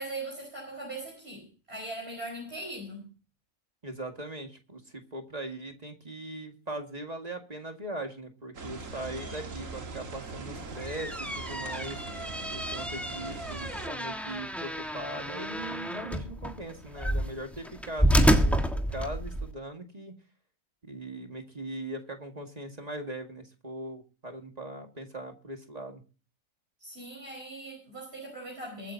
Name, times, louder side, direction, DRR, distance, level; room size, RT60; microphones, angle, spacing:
voice 1, 0.0-3.1 26.8-28.9, right 2 dB, 45° right, -2 dB, 5.1 m, -40 dB
voice 2, 3.8-12.0 12.5-20.1 20.8-26.0, right 1 dB, 30° right, 4 dB, 2.0 m, -40 dB
sound 1, 8.5-13.9, right 3 dB, 65° right, 2.0 m, -41 dB
sound 2, 10.6-19.5, equal, ahead, 1.4 m, -29 dB
23.0 x 9.8 x 2.8 m, 0.36 s
omnidirectional pair, 1.4 m